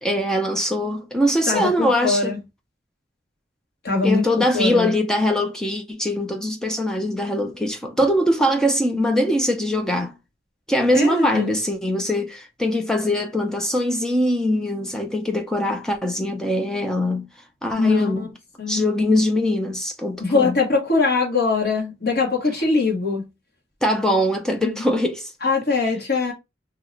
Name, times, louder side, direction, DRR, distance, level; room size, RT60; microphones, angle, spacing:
voice 1, 0.0-2.3 4.0-10.1 10.7-17.3 17.6-18.3 18.7-20.6 23.8-25.3, left 1 dB, 5° left, 0.4 m, -22 dB
voice 2, 1.5-2.4 3.8-4.3 4.5-4.9 10.9-11.5 17.8-18.3 18.6-18.8 20.2-23.2 24.6-24.8 25.4-26.3, left 3 dB, 50° left, 1.1 m, -22 dB
2.8 x 2.1 x 3.7 m
head